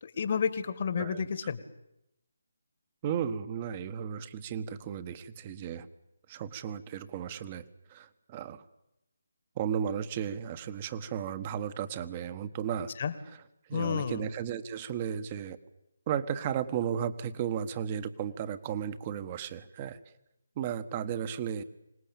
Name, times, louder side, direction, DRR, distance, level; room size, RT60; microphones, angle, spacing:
voice 1, 0.0-1.6 13.0-13.1 13.7-14.3, left 6 dB, 45° left, 13 dB, 1.8 m, -31 dB
voice 2, 1.0-1.3 3.0-5.9 6.3-7.6 7.9-8.6 9.6-12.9 13.3-13.4 13.7-15.6 16.1-20.0 20.6-21.6, right 8 dB, 25° right, 13 dB, 1.4 m, -34 dB
25.5 x 19.5 x 8.9 m, 0.85 s
figure-of-eight pair, 150°, 0 cm